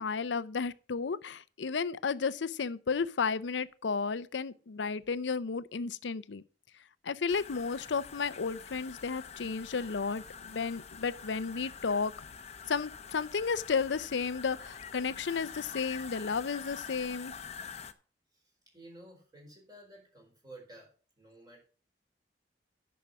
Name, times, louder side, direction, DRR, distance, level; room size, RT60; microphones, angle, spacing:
voice 1, 0.0-6.4 7.0-12.1 12.7-17.3, left 5 dB, 85° left, 0.6 m, -33 dB
sound 1, 7.3-17.9, left 6 dB, 35° left, 0.7 m, -46 dB
voice 2, 18.7-21.6, right 1 dB, 20° right, 4.5 m, -53 dB
10.5 x 6.1 x 6.1 m
head